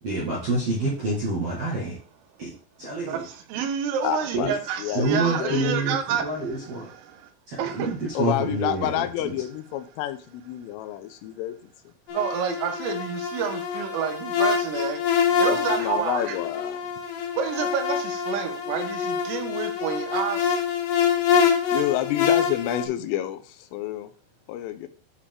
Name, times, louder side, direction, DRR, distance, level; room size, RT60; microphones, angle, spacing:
voice 1, 0.0-2.0 2.4-2.5 2.8-3.3 4.3-4.5 4.9-6.9 7.5-9.3, right 2 dB, 65° right, 1.5 m, -27 dB
voice 2, 3.1-6.5 6.8-7.3 7.6-7.9 12.1-15.0 15.4-16.4 17.4-20.6, right 8 dB, 90° right, 3.7 m, -29 dB
voice 3, 4.0-4.5 4.8-6.0 8.2-11.6 15.4-16.8 21.7-24.1 24.5-24.9, left 13 dB, 85° left, 3.3 m, -29 dB
sound 1, 12.1-22.8, left 7 dB, 70° left, 3.6 m, -25 dB
9.9 x 5.1 x 3.6 m
omnidirectional pair, 5.7 m